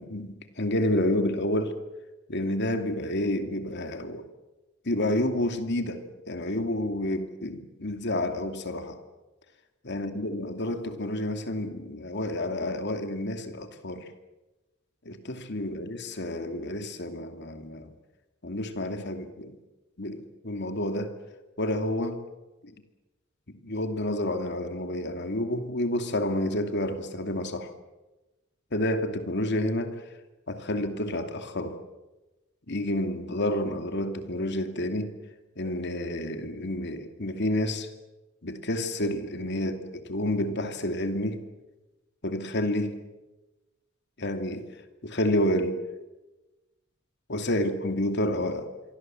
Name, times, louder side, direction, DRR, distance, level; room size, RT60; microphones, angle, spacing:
voice 1, 0.0-1.8 2.3-4.3 4.8-9.0 9.8-14.1 15.0-17.9 18.4-19.6 20.0-21.1 21.6-22.2 22.6-22.7 23.6-27.7 28.7-30.0 30.5-31.8 32.7-35.1 35.6-37.9 38.4-41.4 42.2-43.0 44.2-44.7 45.0-45.8 47.3-48.7, left 1 dB, 55° left, 7 dB, 2.6 m, -29 dB
27.0 x 23.5 x 7.8 m, 1.1 s
head